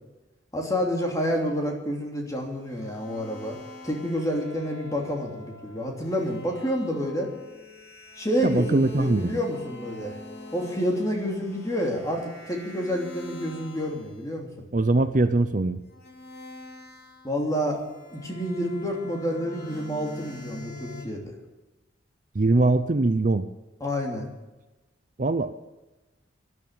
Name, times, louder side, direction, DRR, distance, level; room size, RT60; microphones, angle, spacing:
voice 1, 0.5-3.6 3.8-7.3 8.2-10.2 10.5-14.5 17.2-17.8 18.1-21.3 23.8-24.3, equal, 15° left, 0 dB, 3.0 m, -29 dB
sound 1, 1.1-1.8 2.7-14.2 15.9-21.0, left 2 dB, 50° left, 4.9 m, -44 dB
voice 2, 8.4-9.3 14.7-15.8 22.3-23.5 25.2-25.5, right 2 dB, 40° right, 10 dB, 0.6 m, -22 dB
12.5 x 11.0 x 8.9 m, 1.1 s
head